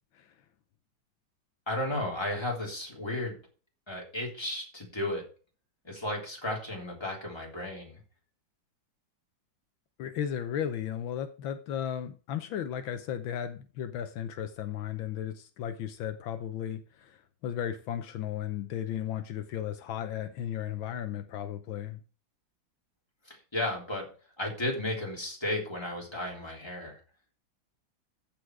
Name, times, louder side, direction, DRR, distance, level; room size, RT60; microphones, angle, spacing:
voice 1, 1.7-3.3 3.9-5.3 5.8-8.0 23.3-24.1 24.4-27.0, left 1 dB, 15° left, -1 dB, 3.4 m, -34 dB
voice 2, 10.0-22.0, left 9 dB, 80° left, 9 dB, 1.6 m, -35 dB
14.5 x 5.0 x 4.7 m, 0.36 s
omnidirectional pair, 2.1 m